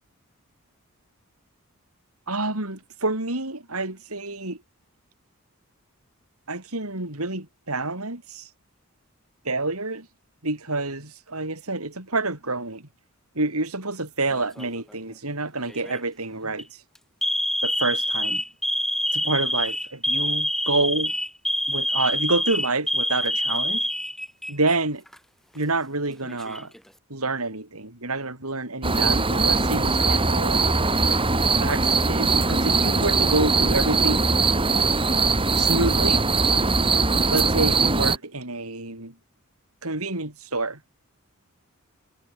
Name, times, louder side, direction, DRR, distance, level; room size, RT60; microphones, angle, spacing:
voice 1, 2.3-4.6 6.5-8.5 9.4-10.1 10.4-12.9 13.4-16.8 17.6-18.4 19.1-21.1 21.7-23.9 24.5-25.0 25.5-26.7 27.1-30.6 31.6-34.3 35.5-36.3 37.3-39.1 39.8-40.8, right 2 dB, 80° right, 6.1 m, -28 dB
Alarm, 14.3-14.8 15.7-16.0 16.4-16.6 17.2-24.8 25.1-25.2 26.1-26.8, left 1 dB, ahead, 3.9 m, -26 dB
sound 1, 28.8-38.2, right 3 dB, 25° right, 3.5 m, -21 dB
head